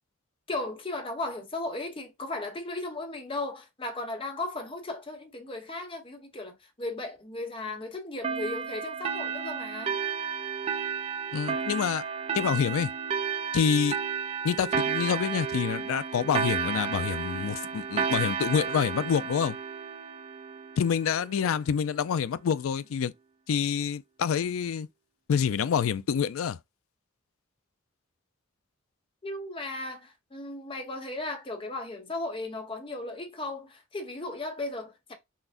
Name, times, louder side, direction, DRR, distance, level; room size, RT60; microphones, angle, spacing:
voice 1, 0.5-10.0 29.2-35.1, left 2 dB, 25° left, 0.9 m, -36 dB
sound 1, 8.2-21.3, right 6 dB, 30° right, 0.4 m, -32 dB
voice 2, 11.3-12.0 12.3-12.9 13.5-14.0 14.4-19.6 20.8-23.1 23.5-24.9 25.3-26.6, left 7 dB, 85° left, 0.4 m, -27 dB
5.7 x 2.1 x 2.5 m
head